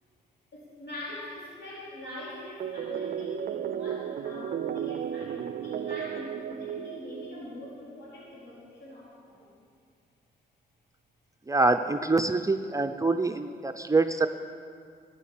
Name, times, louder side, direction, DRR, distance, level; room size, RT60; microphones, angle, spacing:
voice 1, 0.5-9.5, left 1 dB, 75° left, -7 dB, 4.5 m, -42 dB
sound 1, 2.6-7.8, right 9 dB, 55° right, 0.5 m, -34 dB
voice 2, 11.5-14.3, right 3 dB, 20° right, 7 dB, 0.7 m, -25 dB
12.5 x 9.4 x 7.4 m, 2.2 s
supercardioid pair, 55°, 18 cm